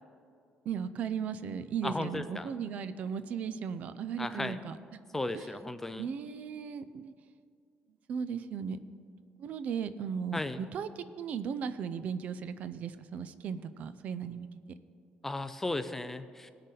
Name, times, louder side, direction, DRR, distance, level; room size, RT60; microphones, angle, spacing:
voice 1, 0.7-5.5 6.0-7.1 8.1-8.8 9.4-14.5, right 7 dB, 50° right, 13 dB, 0.5 m, -37 dB
voice 2, 1.8-2.5 4.2-4.6 5.1-6.0 10.3-10.6 15.2-16.5, left 2 dB, 10° left, 10 dB, 0.4 m, -35 dB
19.5 x 6.5 x 3.9 m, 2.2 s
cardioid pair, 165°, 3 cm